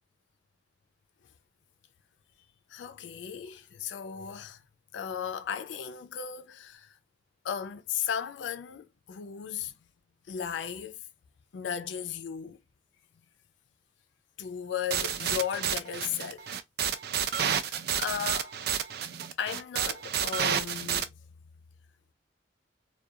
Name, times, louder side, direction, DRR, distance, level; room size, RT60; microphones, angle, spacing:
voice 1, 2.7-4.6 4.9-6.9 7.4-9.7 10.3-11.0 11.5-12.6 14.4-16.5 17.6-18.5 19.4-21.1, left 8 dB, 70° left, 0.4 m, -35 dB
sound 1, 14.9-21.0, right 8 dB, 55° right, 0.3 m, -30 dB
2.4 x 2.2 x 2.6 m
head